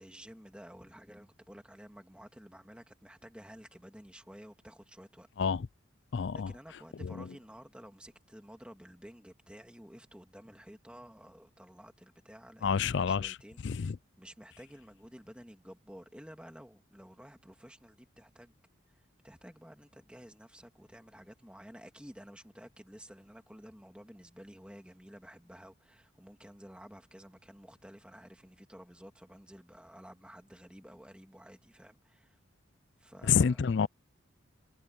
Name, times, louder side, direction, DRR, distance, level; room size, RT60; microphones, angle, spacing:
voice 1, 0.0-5.3 6.3-13.9 14.2-18.5 19.2-32.4 33.0-33.7, equal, 5° right, 2.4 m, -52 dB
voice 2, 6.1-6.5 7.0-7.1 12.6-13.4 13.6-14.0 33.2-33.9, left 6 dB, 60° left, 0.4 m, -28 dB
head